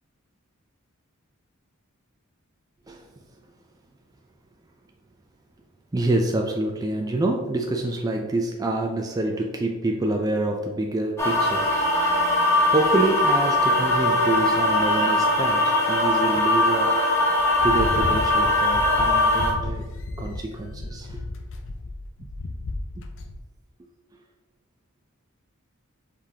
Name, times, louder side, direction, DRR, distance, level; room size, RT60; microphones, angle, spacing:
voice 1, 5.9-11.7 12.7-17.0 17.6-19.9 20.2-21.2 23.0-23.1, right 2 dB, 20° right, 1 dB, 0.3 m, -26 dB
sound 1, 11.2-19.5, left 1 dB, 15° left, 0.8 m, -21 dB
sound 2, 17.4-23.4, left 2 dB, 60° left, 0.5 m, -33 dB
5.0 x 3.6 x 2.8 m, 1.1 s
head